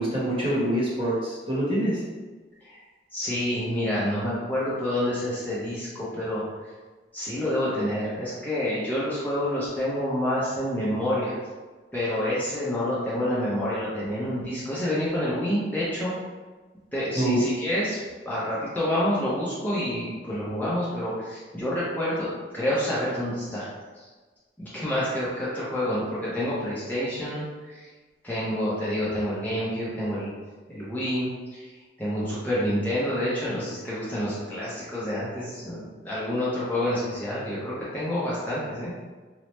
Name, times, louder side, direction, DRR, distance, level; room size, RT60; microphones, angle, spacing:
voice 1, 0.0-2.0 17.1-17.4, right 1 dB, 30° right, -7 dB, 1.0 m, -25 dB
voice 2, 3.1-6.4 7.1-11.3 11.9-16.1 16.9-18.0 18.3-22.3 22.5-23.7 24.6-27.9 28.2-30.3 30.7-31.7 32.0-38.9, left 1 dB, 10° left, -10 dB, 0.6 m, -28 dB
3.0 x 2.1 x 3.1 m, 1.3 s
head